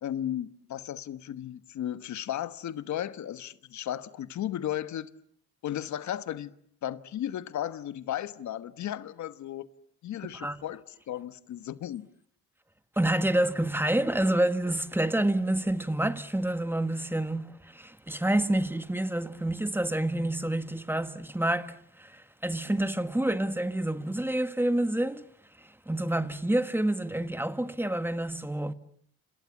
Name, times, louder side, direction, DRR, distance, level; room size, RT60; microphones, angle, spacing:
voice 1, 0.0-5.1 5.6-6.5 6.8-9.7 10.0-12.1, left 11 dB, 70° left, 1.3 m, -35 dB
voice 2, 13.0-25.2 25.6-28.7, right 1 dB, 5° right, 1.5 m, -28 dB
29.0 x 27.5 x 7.2 m
cardioid pair, 90°, 30 cm